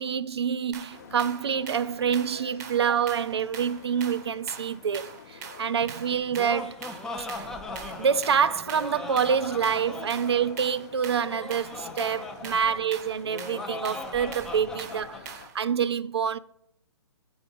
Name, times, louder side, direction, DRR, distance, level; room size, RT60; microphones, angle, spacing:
voice 1, 0.0-6.8 7.2-7.5 8.0-16.4, right 7 dB, 70° right, 0.4 m, -27 dB
sound 1, 0.7-15.6, right 7 dB, 40° right, 0.8 m, -44 dB
sound 2, 0.9-15.5, left 6 dB, 40° left, 0.6 m, -50 dB
Laughter, 6.1-15.2, left 2 dB, 5° left, 0.3 m, -39 dB
8.1 x 3.9 x 5.2 m
figure-of-eight pair, 135°, 14 cm